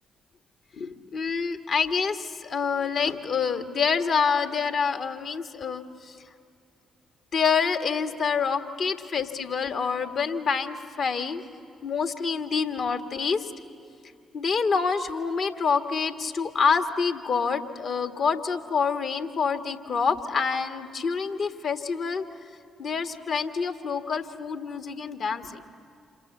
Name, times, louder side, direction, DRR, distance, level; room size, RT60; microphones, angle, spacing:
voice 1, 0.8-6.1 7.3-11.4 11.8-13.5 14.3-22.2 22.8-25.6, left 5 dB, 55° left, 7 dB, 1.5 m, -27 dB
27.5 x 27.5 x 7.2 m, 2.3 s
hypercardioid pair, 40°, 0 cm